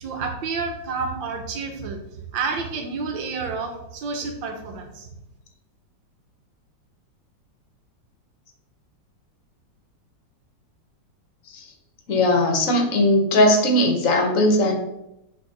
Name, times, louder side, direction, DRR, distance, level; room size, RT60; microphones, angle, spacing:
voice 1, 0.0-2.0 2.3-5.1, right 4 dB, 80° right, 4 dB, 1.5 m, -29 dB
voice 2, 12.1-14.8, left 1 dB, 55° left, 3 dB, 1.1 m, -19 dB
7.4 x 3.4 x 3.8 m, 0.86 s
omnidirectional pair, 2.0 m